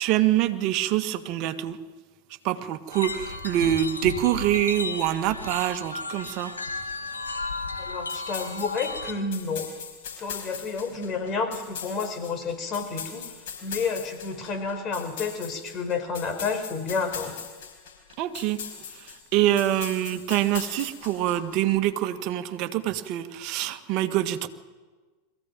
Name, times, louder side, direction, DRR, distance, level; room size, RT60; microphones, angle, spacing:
voice 1, 0.0-1.8 2.4-6.5 18.2-18.6 18.9-24.5, right 12 dB, 50° right, 9 dB, 1.6 m, -25 dB
sound 1, 2.9-9.1, left 3 dB, 90° left, 2.0 m, -34 dB
voice 2, 7.8-9.7 10.1-13.3 13.6-17.3, left 4 dB, 35° left, 7 dB, 4.6 m, -30 dB
sound 2, 8.1-21.6, left 7 dB, 65° left, 4.6 m, -40 dB
22.5 x 15.5 x 9.1 m, 1.3 s
figure-of-eight pair, 90°, 0 cm